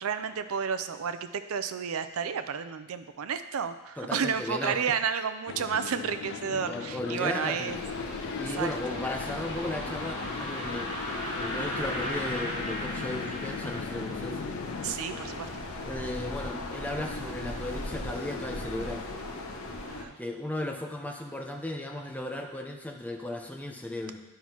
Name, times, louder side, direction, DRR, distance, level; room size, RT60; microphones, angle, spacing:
voice 1, 0.0-7.8 8.5-8.7 14.8-15.5 19.9-20.2, right 6 dB, 85° right, 11 dB, 0.5 m, -31 dB
voice 2, 4.0-4.8 6.7-7.7 8.4-10.9 11.3-14.4 15.8-19.1 20.2-24.2, left 1 dB, 5° left, 1 dB, 0.7 m, -35 dB
sound 1, 5.5-14.9, left 6 dB, 55° left, 0.3 m, -40 dB
sound 2, 6.1-13.9, left 1 dB, 25° left, 2.5 m, -38 dB
sound 3, 7.7-20.0, left 2 dB, 90° left, 0.9 m, -38 dB
11.5 x 5.7 x 3.0 m, 1.0 s
head